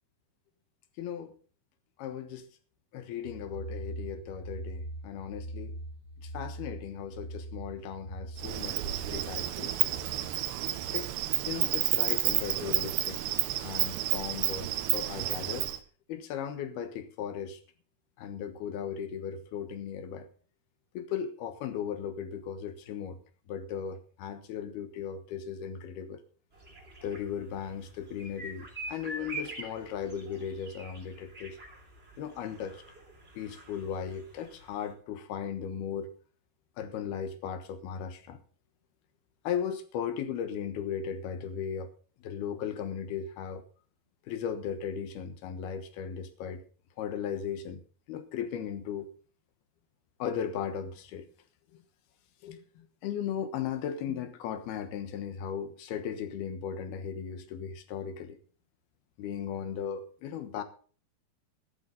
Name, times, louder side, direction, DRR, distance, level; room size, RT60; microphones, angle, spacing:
voice 1, 1.0-1.4 2.0-2.5 2.9-5.7 6.2-9.8 10.9-11.1 11.4-13.2 13.6-15.7 16.1-17.6 18.2-20.3 20.9-23.2 23.5-26.2 27.0-31.6 32.2-32.8 33.3-36.1 36.8-38.4 39.4-41.9 42.2-43.6 44.3-46.6 47.0-47.8 48.1-49.1 50.2-51.3 51.7-51.8 52.4-58.4 59.2-60.6, left 8 dB, 70° left, 3.1 m, -37 dB
sound 1, 3.2-11.0, right 1 dB, 55° right, 1.7 m, -43 dB
Insect, 8.4-15.8, right 15 dB, 90° right, 3.1 m, -30 dB
sound 2, 26.5-34.9, right 2 dB, 15° right, 2.9 m, -45 dB
13.5 x 12.5 x 3.9 m
omnidirectional pair, 4.8 m